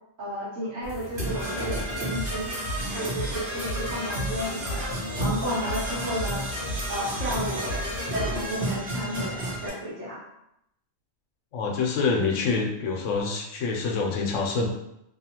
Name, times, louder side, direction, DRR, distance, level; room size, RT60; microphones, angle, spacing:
voice 1, 0.2-2.5 2.8-4.8 5.2-6.5 6.9-7.8 8.1-10.2, equal, 70° right, -5 dB, 1.3 m, -32 dB
sound 1, 0.8-8.4, left 1 dB, 55° left, 0.7 m, -35 dB
Percussion / Brass instrument, 1.2-9.7, right 1 dB, 50° right, 0.9 m, -32 dB
voice 2, 11.5-14.7, left 4 dB, 80° left, 1 dB, 0.9 m, -26 dB
2.7 x 2.4 x 2.8 m, 0.81 s
omnidirectional pair, 1.3 m